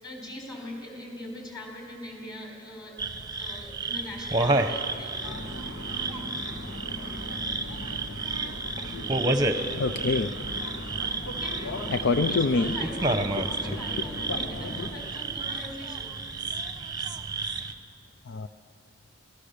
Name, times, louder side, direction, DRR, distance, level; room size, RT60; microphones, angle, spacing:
voice 1, 0.0-3.0 3.4-5.3 11.3-16.1, left 1 dB, 20° left, -1 dB, 4.6 m, -41 dB
sound 1, 3.0-17.7, right 2 dB, 20° right, 0.9 m, -31 dB
sound 2, 5.2-14.9, left 1 dB, 75° left, 1.9 m, -38 dB
voice 2, 9.8-10.3 11.9-12.8 18.3-18.5, left 4 dB, 60° left, 10 dB, 0.5 m, -25 dB
24.5 x 18.0 x 6.8 m, 2.5 s
head